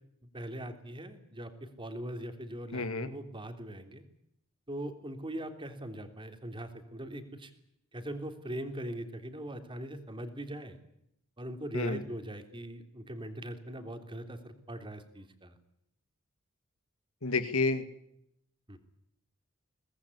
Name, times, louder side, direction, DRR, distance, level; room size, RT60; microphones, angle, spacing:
voice 1, 0.3-4.0 4.7-7.5 7.9-10.8 11.4-15.5 18.7-18.8, right 1 dB, 25° right, 7 dB, 3.3 m, -41 dB
voice 2, 2.7-3.1 11.7-12.0 17.2-17.8, left 3 dB, 75° left, 11 dB, 2.4 m, -30 dB
23.5 x 19.0 x 9.9 m, 0.75 s
head